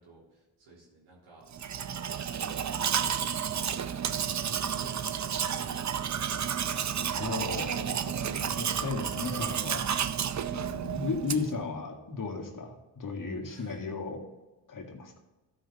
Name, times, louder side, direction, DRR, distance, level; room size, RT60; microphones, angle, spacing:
voice 1, 0.0-1.4 1.9-3.3 4.0-6.1 13.4-13.8, right 2 dB, 80° right, -4 dB, 3.5 m, -55 dB
Domestic sounds home sounds, 1.5-11.6, right 8 dB, 40° right, 0.6 m, -31 dB
voice 2, 7.2-9.9 10.5-14.2 14.7-15.2, left 4 dB, 40° left, 2 dB, 2.1 m, -35 dB
12.5 x 5.6 x 4.1 m, 1.1 s
supercardioid pair, 55°, 47 cm